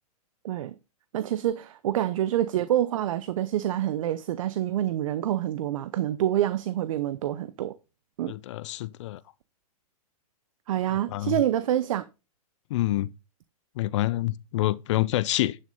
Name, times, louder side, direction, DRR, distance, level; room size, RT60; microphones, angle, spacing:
voice 1, 1.1-7.8 8.2-8.3 10.7-12.1, right 12 dB, 60° right, 0.7 m, -27 dB
voice 2, 8.3-9.2 11.1-11.4 12.7-13.1 13.8-15.6, left 16 dB, 50° left, 0.5 m, -27 dB
11.0 x 6.4 x 3.8 m
hypercardioid pair, 130°, 19 cm